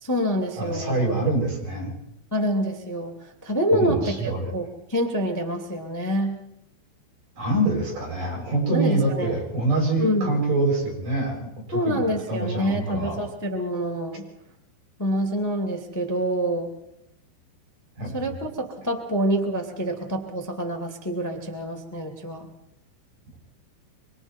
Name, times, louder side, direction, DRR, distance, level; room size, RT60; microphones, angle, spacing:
voice 1, 0.0-1.0 2.3-6.3 8.7-9.3 10.0-10.3 11.7-14.2 15.0-16.7 18.1-22.5, equal, 15° left, 3 dB, 0.6 m, -26 dB
voice 2, 0.6-1.9 3.7-4.5 7.3-13.2 18.0-18.4, right 2 dB, 45° right, -1 dB, 9.1 m, -25 dB
25.5 x 25.5 x 4.5 m, 0.81 s
omnidirectional pair, 5.5 m